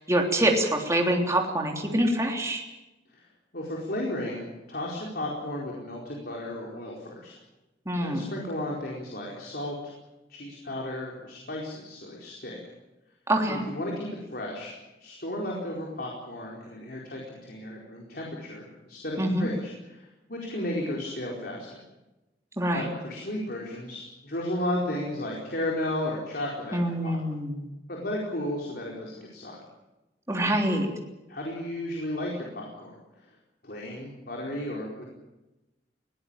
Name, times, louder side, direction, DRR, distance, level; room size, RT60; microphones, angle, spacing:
voice 1, 0.0-2.6 7.8-8.3 13.3-13.6 19.2-19.5 22.6-22.9 26.7-27.7 30.3-30.9, right 1 dB, 15° right, 1 dB, 3.3 m, -25 dB
voice 2, 3.5-7.3 8.0-9.9 10.3-12.6 13.5-14.7 15.0-21.8 22.7-27.2 27.9-29.6 31.3-33.3 33.6-35.0, left 1 dB, 60° left, -2 dB, 4.5 m, -34 dB
21.5 x 17.5 x 8.9 m, 1.0 s
head